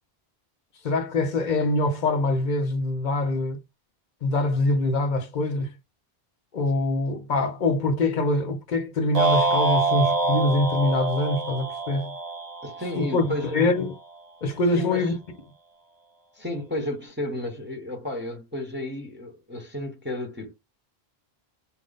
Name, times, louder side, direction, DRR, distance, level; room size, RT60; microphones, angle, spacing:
voice 1, 0.8-3.6 4.2-5.7 6.5-12.1 13.0-13.3 13.5-13.9 14.4-15.1, left 2 dB, 50° left, 0.9 m, -24 dB
sound 1, 9.1-13.5, right 3 dB, 40° right, 0.9 m, -25 dB
voice 2, 12.6-13.6 14.7-15.1 16.3-20.5, left 1 dB, 10° right, 0.9 m, -32 dB
4.3 x 2.2 x 4.0 m
omnidirectional pair, 1.1 m